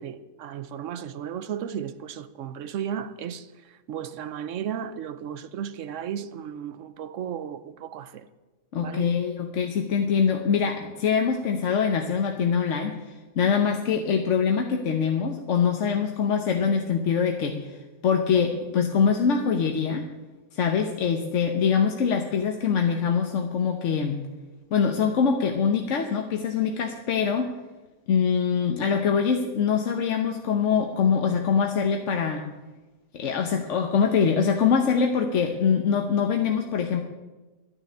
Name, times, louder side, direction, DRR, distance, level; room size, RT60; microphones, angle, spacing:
voice 1, 0.0-8.3 8.8-9.1, right 8 dB, 60° right, 0.9 m, -35 dB
voice 2, 8.7-13.0 13.4-20.0 20.5-24.2 24.7-27.5 28.1-32.5 33.1-37.0, left 6 dB, 55° left, 1.1 m, -24 dB
12.0 x 7.0 x 9.7 m
omnidirectional pair, 1.7 m